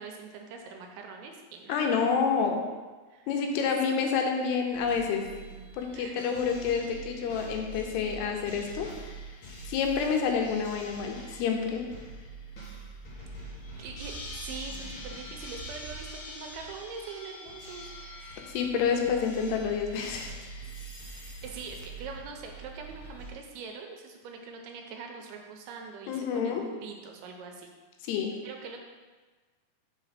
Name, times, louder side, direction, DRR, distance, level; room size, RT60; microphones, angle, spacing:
voice 1, 0.0-1.9 3.1-3.3 3.7-4.0 5.9-6.2 13.2-17.9 21.1-27.7 28.4-28.8, right 5 dB, 80° right, 3 dB, 2.5 m, -43 dB
voice 2, 1.7-2.6 3.3-5.2 5.7-9.1 9.7-11.9 18.5-20.3 26.1-26.6 28.0-28.3, left 6 dB, 85° left, 3 dB, 2.9 m, -28 dB
sound 1, 4.7-23.3, right 2 dB, 60° left, 1.3 m, -44 dB
5.4 x 4.9 x 5.8 m, 1.3 s
omnidirectional pair, 4.7 m